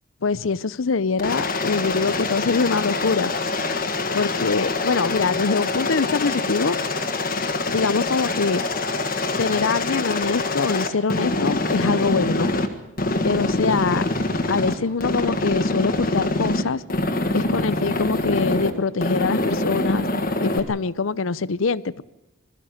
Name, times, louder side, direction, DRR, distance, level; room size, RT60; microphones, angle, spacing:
voice 1, 0.2-3.3 4.1-6.8 7.7-8.6 9.4-12.5 13.2-14.1 14.5-16.8 17.3-20.1 20.4-22.0, left 4 dB, 80° left, 19 dB, 0.7 m, -24 dB
Aircraft, 1.2-12.7 13.0-14.7 15.0-16.6 16.9-18.7 19.0-20.6, left 2 dB, 45° left, 1.8 m, -24 dB
21.5 x 14.0 x 9.4 m, 0.97 s
head